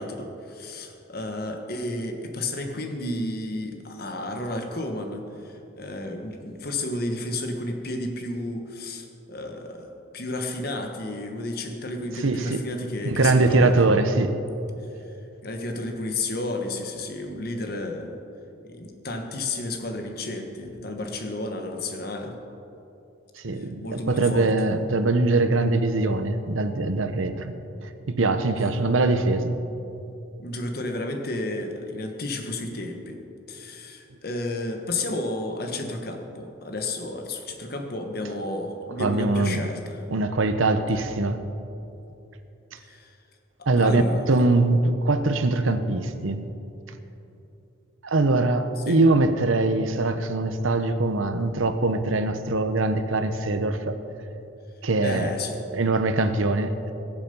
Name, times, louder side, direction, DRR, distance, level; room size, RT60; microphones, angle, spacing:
voice 1, 0.0-13.9 15.1-15.2 15.4-18.2 18.6-22.4 23.6-24.5 30.4-33.2 33.5-40.0 42.8-43.1 43.8-44.5 48.8-49.0 55.0-55.6, left 2 dB, 50° left, 4 dB, 1.4 m, -32 dB
voice 2, 12.2-12.6 13.0-14.4 23.4-27.5 27.8-29.6 39.0-39.7 40.1-41.4 43.7-44.0 44.3-46.4 48.0-54.0 54.8-55.3 55.7-56.9, right 2 dB, 80° right, 10 dB, 0.9 m, -22 dB
21.0 x 7.2 x 5.4 m, 2.9 s
head